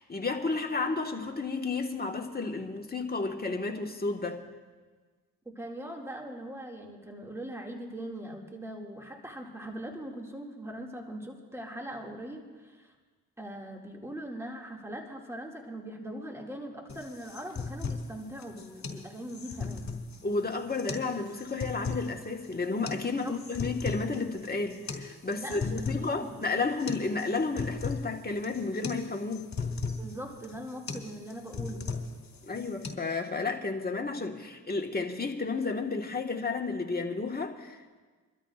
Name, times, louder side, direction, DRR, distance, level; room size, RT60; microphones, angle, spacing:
voice 1, 0.0-4.4 20.2-29.5 32.4-38.0, left 3 dB, 25° left, 2 dB, 1.6 m, -32 dB
voice 2, 5.5-12.9 13.4-20.0 23.2-23.4 25.4-26.4 30.0-31.9, right 1 dB, 5° right, 0 dB, 2.3 m, -41 dB
sound 1, 16.9-32.9, left 4 dB, 50° left, 2.2 m, -38 dB
27.0 x 13.0 x 2.5 m, 1.4 s
supercardioid pair, 50°, 37 cm